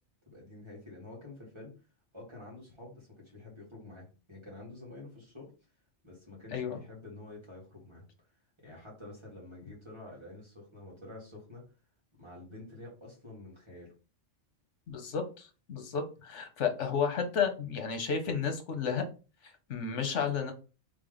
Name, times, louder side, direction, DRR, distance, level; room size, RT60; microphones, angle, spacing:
voice 1, 0.3-1.8 2.1-5.5 6.0-8.0 8.6-11.7 12.2-13.9, left 2 dB, 25° right, -4 dB, 2.0 m, -48 dB
voice 2, 14.9-19.0 19.7-20.5, left 6 dB, 85° left, 7 dB, 1.2 m, -32 dB
3.6 x 3.4 x 3.9 m, 0.34 s
omnidirectional pair, 1.2 m